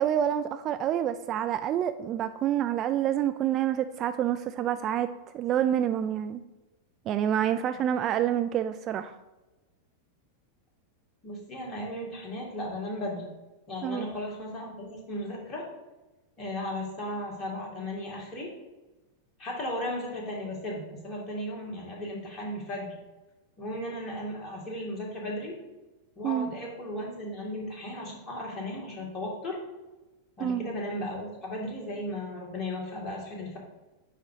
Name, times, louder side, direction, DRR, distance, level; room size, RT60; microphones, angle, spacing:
voice 1, 0.0-5.1 5.3-6.4 7.1-9.2 13.8-14.1 26.2-26.5 30.4-30.6, right 10 dB, 35° right, 10 dB, 0.3 m, -27 dB
voice 2, 11.2-13.3 13.7-15.7 16.4-18.5 19.4-22.9 23.6-25.6 26.2-29.6 30.4-33.6, left 1 dB, 25° left, -2 dB, 2.3 m, -35 dB
9.1 x 3.0 x 4.9 m, 1.1 s
figure-of-eight pair, 90°, 0 cm